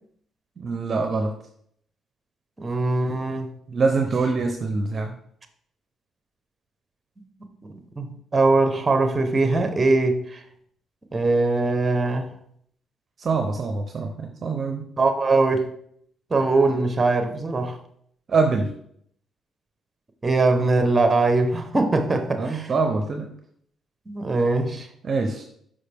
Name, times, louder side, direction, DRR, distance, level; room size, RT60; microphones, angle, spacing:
voice 1, 0.6-1.3 3.7-5.1 13.2-14.8 18.3-18.7 22.4-23.3 25.0-25.4, right 4 dB, 45° right, 5 dB, 0.7 m, -24 dB
voice 2, 2.6-3.5 8.0-10.4 11.1-12.3 15.0-15.7 16.3-17.8 20.2-22.7 24.1-24.9, right 3 dB, 25° right, 7 dB, 1.0 m, -21 dB
5.5 x 5.4 x 3.5 m, 0.66 s
cardioid pair, 90°, 0 cm